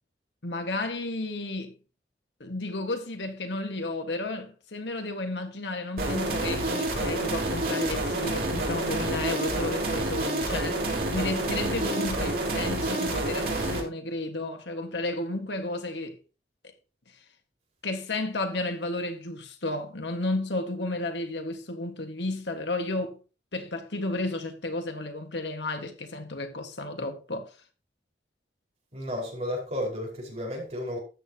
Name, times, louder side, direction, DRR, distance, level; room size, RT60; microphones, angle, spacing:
voice 1, 0.4-1.7 2.4-16.2 16.6-16.7 17.8-23.2 23.5-27.5, left 2 dB, 85° left, 1.7 m, -32 dB
sound 1, 6.0-13.8, right 2 dB, 55° right, 3.4 m, -28 dB
voice 2, 28.9-31.0, left 1 dB, 40° right, 4.9 m, -32 dB
13.0 x 8.7 x 2.9 m
head